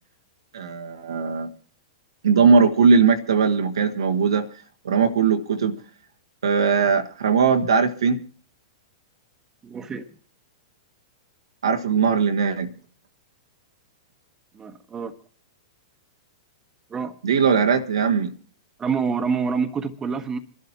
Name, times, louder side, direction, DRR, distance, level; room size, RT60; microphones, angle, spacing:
voice 1, 0.5-1.5 2.2-4.5 4.8-5.8 6.4-8.2 11.6-12.7 17.2-18.3, right 5 dB, 75° right, 1.5 m, -19 dB
voice 2, 9.6-10.1 14.5-15.1 16.9-17.1 18.8-20.4, right 5 dB, 20° right, 1.3 m, -27 dB
26.5 x 12.0 x 2.9 m
hypercardioid pair, 105°, 3 cm